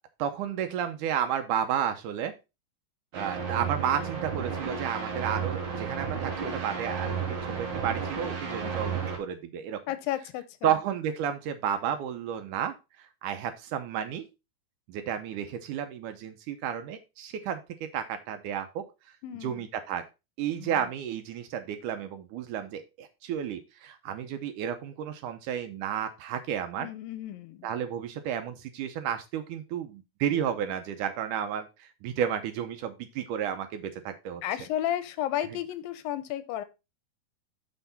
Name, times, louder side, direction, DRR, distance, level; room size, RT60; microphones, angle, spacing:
voice 1, 0.2-2.3 3.1-7.2 7.6-9.8 10.6-14.3 14.9-18.8 19.4-20.0 20.4-26.9 27.6-34.4, right 9 dB, 75° right, 8 dB, 2.1 m, -32 dB
sound 1, 3.1-9.2, right 6 dB, 45° right, 2.2 m, -33 dB
voice 2, 9.9-10.8 19.2-19.7 20.6-20.9 26.8-27.7 34.4-36.6, left 12 dB, 85° left, 13 dB, 2.4 m, -33 dB
7.0 x 5.8 x 4.0 m, 0.26 s
omnidirectional pair, 4.1 m